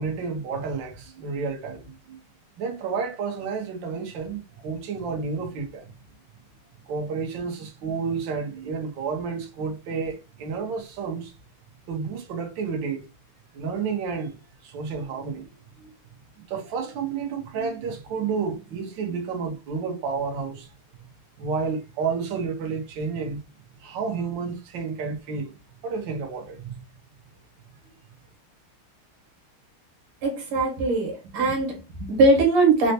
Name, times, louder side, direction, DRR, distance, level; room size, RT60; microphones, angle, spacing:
voice 1, 0.0-2.2 2.6-5.9 6.9-11.3 11.9-13.0 13.5-14.4 14.6-15.5 15.8-15.9 16.5-20.7 21.4-23.4 23.8-25.5 25.8-26.8, right 5 dB, 65° right, 1.4 m, -30 dB
voice 2, 30.2-32.9, right 3 dB, 90° right, 2.0 m, -21 dB
4.3 x 2.1 x 2.7 m
omnidirectional pair, 2.4 m